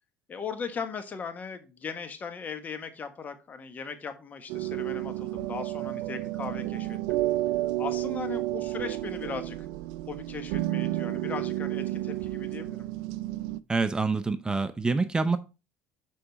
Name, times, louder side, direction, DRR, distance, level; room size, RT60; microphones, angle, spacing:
voice 1, 0.3-7.2 7.8-9.7 10.1-12.9, left 5 dB, 35° left, 1.3 m, -38 dB
sound 1, 4.5-13.6, right 16 dB, 85° right, 0.4 m, -31 dB
voice 2, 13.7-15.4, right 3 dB, 15° right, 0.5 m, -26 dB
7.0 x 5.0 x 4.0 m
supercardioid pair, 95°, 5 cm